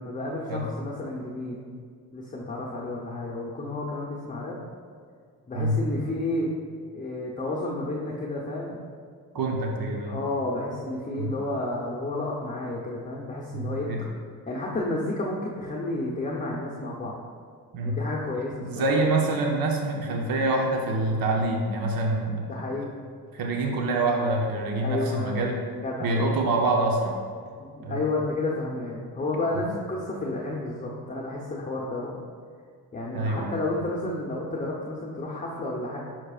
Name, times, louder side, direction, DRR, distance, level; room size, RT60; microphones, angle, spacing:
voice 1, 0.0-1.6 2.1-4.6 5.5-6.5 6.9-8.8 10.0-14.1 14.5-17.2 17.8-18.9 22.5-23.0 24.8-26.4 27.6-32.2 32.9-36.0, left 2 dB, 20° left, -4 dB, 0.8 m, -31 dB
voice 2, 9.3-10.2 11.2-11.3 13.5-14.0 17.7-18.0 18.6-22.5 23.3-25.6 26.0-27.2 27.8-28.0 29.5-29.7 33.1-33.5, right 2 dB, 55° right, 1 dB, 0.9 m, -26 dB
9.7 x 5.8 x 2.5 m, 2.1 s
cardioid pair, 95°, 40 cm